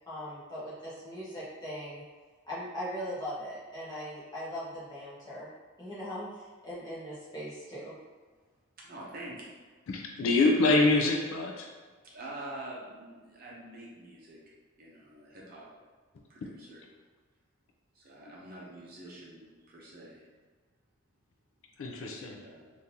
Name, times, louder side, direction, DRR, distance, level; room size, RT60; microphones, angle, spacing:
voice 1, 0.1-2.0 2.4-5.5 5.8-6.3 6.6-7.9, equal, 20° left, -10 dB, 1.1 m, -39 dB
voice 2, 8.8-9.5 12.0-14.4 14.8-15.7 16.3-16.8 17.9-20.3 22.3-22.7, right 1 dB, 40° right, -4 dB, 0.7 m, -46 dB
voice 3, 9.9-11.7 16.4-16.5 21.8-22.4, left 3 dB, 65° left, 1 dB, 0.4 m, -26 dB
3.5 x 2.6 x 2.8 m, 1.4 s
head